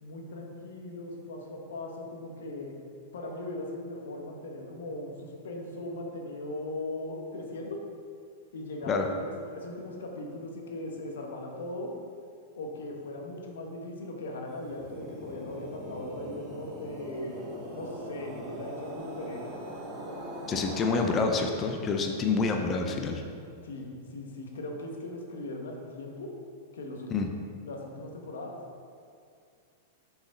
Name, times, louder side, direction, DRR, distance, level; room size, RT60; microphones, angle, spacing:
voice 1, 0.0-2.8 3.1-7.8 8.5-11.9 12.6-17.4 17.7-19.5 23.6-26.3 26.7-27.3 27.6-28.6, left 2 dB, 80° left, 1 dB, 1.1 m, -39 dB
sound 1, 14.5-21.9, right 1 dB, 40° right, 1.7 m, -41 dB
voice 2, 20.5-23.2 27.1-27.3, left 4 dB, 30° left, 3 dB, 0.6 m, -27 dB
6.6 x 4.9 x 3.9 m, 2.3 s
hypercardioid pair, 115°, 0 cm